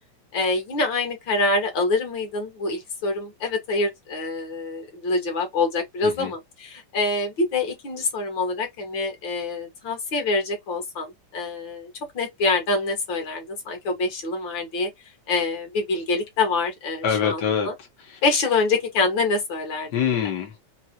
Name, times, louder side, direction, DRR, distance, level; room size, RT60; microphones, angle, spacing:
voice 1, 0.3-14.9 15.3-17.4 17.6-17.7 18.2-19.9, left 3 dB, 50° left, 1.6 m, -25 dB
voice 2, 17.0-17.7 18.0-18.2 19.9-20.6, left 8 dB, 90° left, 0.9 m, -25 dB
5.3 x 2.4 x 2.8 m
omnidirectional pair, 3.7 m